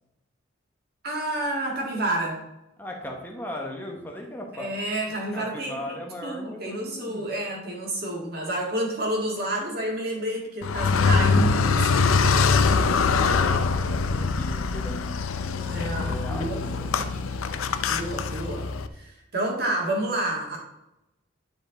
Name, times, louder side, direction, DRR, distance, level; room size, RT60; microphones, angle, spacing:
voice 1, 1.0-2.4 4.5-6.0 6.2-12.4 15.7-16.6 17.9-18.7 19.0-20.6, right 1 dB, 50° right, -1 dB, 2.1 m, -29 dB
voice 2, 2.8-4.7 5.1-7.2 13.4-15.2 16.0-17.2, left 1 dB, 10° left, 1 dB, 1.1 m, -38 dB
Car, 10.6-18.9, left 4 dB, 90° left, 0.5 m, -23 dB
9.6 x 5.0 x 4.0 m, 0.87 s
head